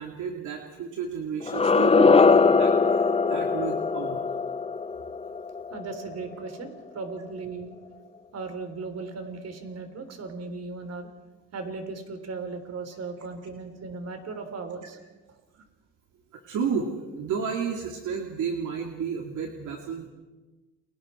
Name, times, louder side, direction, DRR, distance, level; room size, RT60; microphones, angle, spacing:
voice 1, 0.0-4.2 16.3-20.1, right 6 dB, 80° right, 1 dB, 2.6 m, -32 dB
sound 1, 1.4-6.3, left 4 dB, 20° left, 0.6 m, -21 dB
voice 2, 5.7-7.7 8.3-11.1 11.5-15.0, right 4 dB, 55° right, 6 dB, 3.7 m, -37 dB
30.0 x 22.5 x 4.5 m, 1.2 s
cardioid pair, 90°, 30 cm